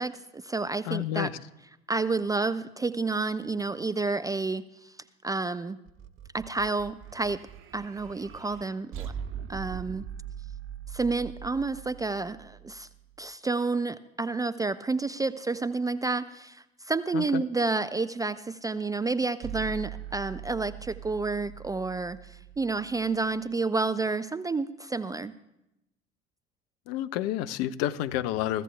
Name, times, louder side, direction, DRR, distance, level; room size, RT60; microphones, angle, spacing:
voice 1, 0.0-1.3 1.9-4.9 5.2-5.8 6.3-7.4 7.7-9.1 9.5-10.0 10.9-12.9 13.2-25.3, right 3 dB, 10° right, 13 dB, 0.4 m, -30 dB
voice 2, 0.8-1.4 17.1-17.4 26.9-28.6, left 13 dB, 55° left, 14 dB, 0.7 m, -30 dB
sound 1, 5.9-13.2 19.4-23.5, right 9 dB, 40° right, 0.8 m, -42 dB
23.0 x 15.0 x 2.3 m, 0.91 s
figure-of-eight pair, 70°, 31 cm